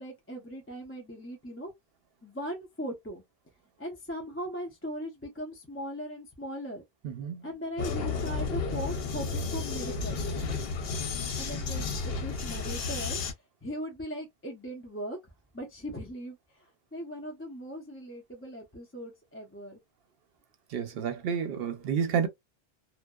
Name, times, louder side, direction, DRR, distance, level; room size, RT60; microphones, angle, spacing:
voice 1, 0.0-1.7 2.2-3.2 3.8-6.8 7.4-10.2 11.4-13.2 13.6-19.8, equal, 15° left, 0.5 m, -39 dB
voice 2, 7.0-7.4 20.7-22.3, right 7 dB, 70° right, 0.8 m, -30 dB
Vehicle, 7.8-13.3, left 4 dB, 70° left, 0.9 m, -32 dB
2.6 x 2.1 x 2.2 m
omnidirectional pair, 1.0 m